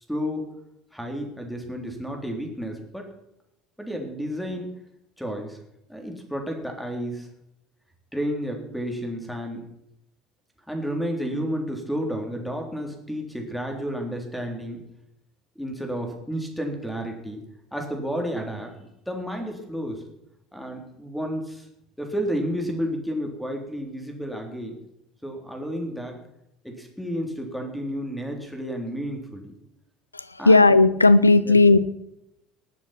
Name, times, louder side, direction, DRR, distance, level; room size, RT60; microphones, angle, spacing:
voice 1, 0.1-0.4 0.9-3.1 3.8-4.7 5.2-5.6 5.9-7.3 8.1-9.6 10.7-14.8 15.6-17.4 17.7-20.0 20.5-21.7 22.0-24.8 25.2-26.2 26.6-29.5 30.4-30.7 31.4-31.6, equal, ahead, 2 dB, 3.7 m, -31 dB
voice 2, 30.1-31.8, left 3 dB, 90° left, 16 dB, 0.5 m, -15 dB
19.5 x 7.7 x 5.9 m, 0.82 s
figure-of-eight pair, 65°, 0 cm